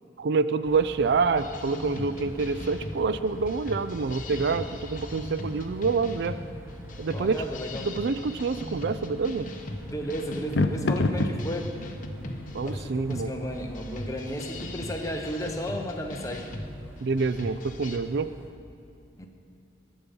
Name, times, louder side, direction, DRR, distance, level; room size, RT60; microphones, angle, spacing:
voice 1, 0.2-6.4 7.0-7.4 7.8-9.5 12.5-13.3 17.0-18.3, right 4 dB, 65° right, 13 dB, 0.4 m, -27 dB
sound 1, 0.6-18.5, equal, 15° right, 0.9 m, -45 dB
sound 2, 1.4-18.0, left 1 dB, 50° left, 1.1 m, -39 dB
sound 3, 6.7-16.8, left 2 dB, 80° left, 0.7 m, -35 dB
voice 2, 7.1-7.9 9.9-11.8 12.6-16.5 19.2-19.3, equal, 20° left, 2 dB, 1.1 m, -34 dB
20.0 x 7.2 x 5.4 m, 2.7 s
head